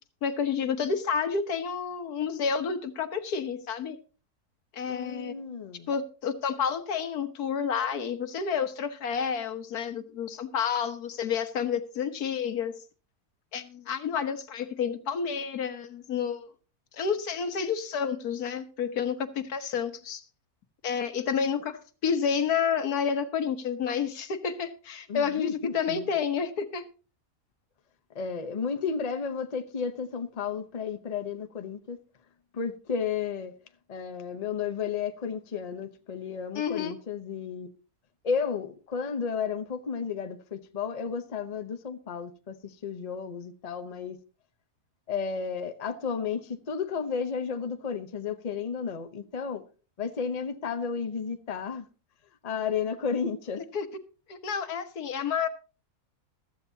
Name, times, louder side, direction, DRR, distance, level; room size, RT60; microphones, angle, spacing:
voice 1, 0.2-4.0 4.7-5.3 5.9-12.7 13.5-16.5 16.9-20.2 20.8-26.8 36.6-36.9 53.7-53.9 54.3-55.5, left 6 dB, 80° left, 1.7 m, -30 dB
voice 2, 4.9-5.9 25.1-26.1 28.1-32.0 32.5-33.6 33.9-37.7 38.2-44.2 45.1-49.7 50.0-51.9 52.4-53.7, left 6 dB, 30° left, 0.8 m, -33 dB
15.5 x 13.5 x 2.8 m
omnidirectional pair, 1.6 m